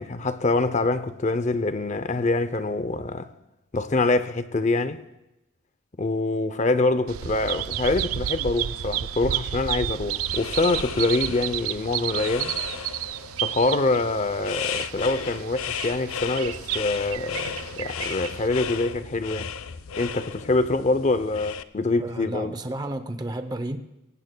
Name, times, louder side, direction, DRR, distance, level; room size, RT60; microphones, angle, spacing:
voice 1, 0.0-3.3 3.7-5.0 6.0-12.5 13.4-19.5 20.0-22.5, left 2 dB, 35° left, 0.5 m, -25 dB
Bird vocalization bird call bird song, 7.1-18.5, right 11 dB, 90° right, 0.4 m, -32 dB
sound 1, 10.1-21.6, left 7 dB, 80° left, 0.5 m, -35 dB
voice 2, 22.0-23.8, right 1 dB, 20° right, 0.6 m, -32 dB
24.5 x 17.5 x 2.2 m
head